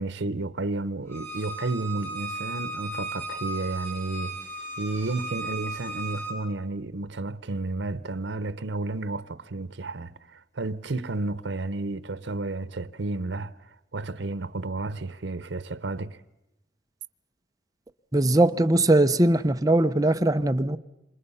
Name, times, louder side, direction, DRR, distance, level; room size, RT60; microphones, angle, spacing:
voice 1, 0.0-4.4 4.8-16.2, right 2 dB, 85° right, 0.8 m, -32 dB
Bowed string instrument, 1.1-6.3, right 2 dB, 15° left, 7.2 m, -35 dB
voice 2, 18.1-20.8, right 1 dB, 20° right, 0.8 m, -20 dB
28.0 x 26.0 x 5.6 m
head